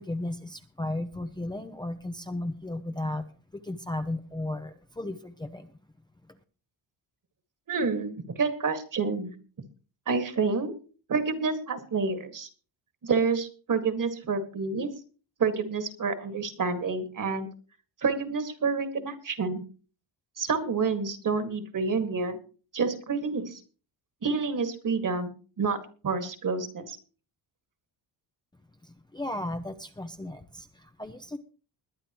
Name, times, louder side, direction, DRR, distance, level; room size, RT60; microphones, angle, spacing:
voice 1, 0.0-3.3 3.5-5.7 6.3-6.4 28.8-31.4, left 1 dB, 10° left, 6 dB, 0.7 m, -35 dB
voice 2, 7.7-9.3 10.1-10.7 11.1-12.5 13.0-14.9 15.4-17.5 18.0-19.6 20.4-22.4 22.7-23.6 24.2-25.8 26.0-27.0, right 4 dB, 45° right, 8 dB, 2.1 m, -28 dB
21.5 x 10.0 x 3.1 m, 0.37 s
cardioid pair, 125°, 45 cm